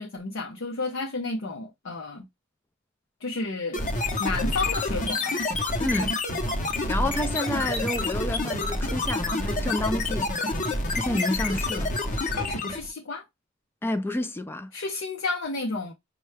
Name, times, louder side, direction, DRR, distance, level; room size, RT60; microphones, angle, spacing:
voice 1, 0.0-2.3 3.2-3.8 4.2-5.4 12.3-13.2 14.7-15.9, left 3 dB, 65° left, 0.6 m, -31 dB
sound 1, 3.7-12.9, left 2 dB, 40° left, 0.8 m, -28 dB
voice 2, 5.8-6.1 6.9-10.3 10.9-11.9 13.8-14.7, left 1 dB, 10° left, 0.3 m, -29 dB
5.4 x 2.3 x 3.2 m
head